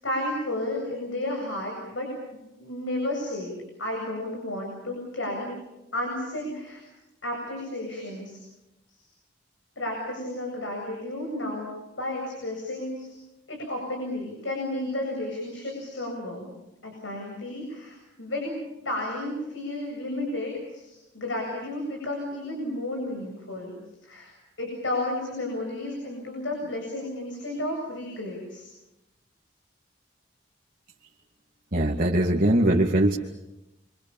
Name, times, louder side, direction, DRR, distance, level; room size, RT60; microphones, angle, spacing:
voice 1, 0.0-3.5 3.8-5.5 5.9-6.8 7.2-8.4 9.8-11.7 12.0-13.1 13.5-16.5 16.8-23.7 24.0-24.3 24.6-28.6, left 1 dB, 85° left, 1 dB, 8.0 m, -32 dB
voice 2, 31.7-33.2, right 1 dB, 50° right, -3 dB, 2.3 m, -21 dB
29.5 x 26.5 x 7.3 m, 0.96 s
head